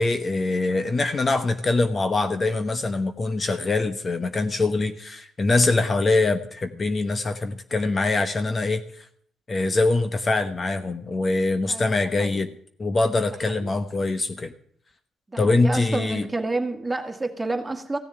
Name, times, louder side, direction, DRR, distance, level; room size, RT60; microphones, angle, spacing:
voice 1, 0.0-9.0 9.5-12.5 12.8-14.5 15.4-16.3, left 3 dB, 35° left, 9 dB, 1.0 m, -23 dB
voice 2, 11.7-12.5 13.5-13.7 15.3-18.0, right 2 dB, 15° right, 4 dB, 2.0 m, -30 dB
15.5 x 7.0 x 9.2 m, 0.65 s
cardioid pair, 90°, 0 cm